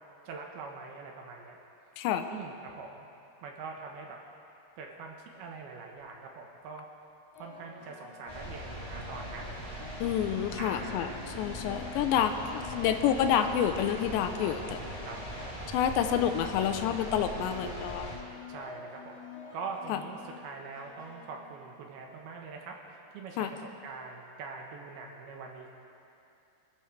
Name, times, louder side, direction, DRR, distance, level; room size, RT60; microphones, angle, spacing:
voice 1, 0.3-1.6 2.3-3.1 3.4-4.2 4.8-6.9 7.3-9.6 10.6-11.2 11.9-12.3 13.3-13.6 14.4-15.2 18.5-19.2 19.5-25.7, right 4 dB, 70° right, 0 dB, 2.8 m, -43 dB
sound 1, 5.7-6.1 7.3-22.2, left 4 dB, 65° left, 5.0 m, -48 dB
sound 2, 8.3-18.2, equal, 10° left, 2.4 m, -41 dB
voice 2, 10.0-11.1 11.4-14.8 15.7-18.2 19.9-20.0 23.4-23.5, left 9 dB, 85° left, 8 dB, 2.9 m, -28 dB
24.5 x 14.0 x 3.3 m, 2.6 s
omnidirectional pair, 5.1 m